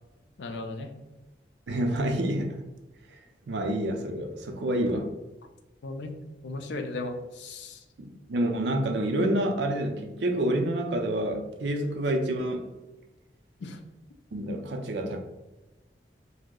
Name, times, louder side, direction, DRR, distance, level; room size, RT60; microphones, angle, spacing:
voice 1, 0.4-0.9 5.8-6.2 6.4-7.8 13.6-13.8, left 2 dB, 85° left, 5 dB, 0.4 m, -36 dB
voice 2, 1.7-2.6 3.1-3.2 3.5-5.1 8.0-12.7 14.3-15.2, right 1 dB, 85° right, 4 dB, 0.5 m, -28 dB
2.7 x 2.0 x 3.6 m, 1.1 s
head